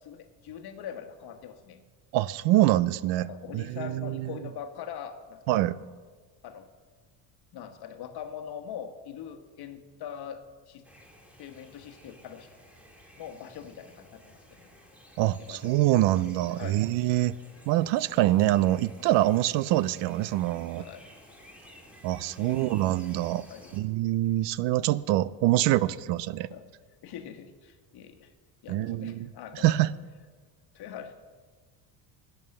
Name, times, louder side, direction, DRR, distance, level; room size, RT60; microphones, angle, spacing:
voice 1, 0.0-1.8 3.2-5.6 6.4-6.7 7.5-10.9 11.4-12.5 13.2-14.9 15.4-15.7 16.5-16.8 20.8-21.1 22.1-22.7 23.5-23.7 26.5-26.6 27.0-28.3 28.6-29.8 30.7-31.1, left 8 dB, 55° left, 8 dB, 1.3 m, -42 dB
voice 2, 2.1-3.3 3.5-4.3 5.5-5.8 15.2-17.4 17.7-20.8 22.0-23.5 23.7-26.5 28.7-29.3 29.6-29.9, right 15 dB, 70° right, 19 dB, 0.6 m, -25 dB
sound 1, 10.8-23.8, equal, 5° right, 2.3 m, -54 dB
11.0 x 9.2 x 6.5 m, 1.5 s
cardioid pair, 110°, 45 cm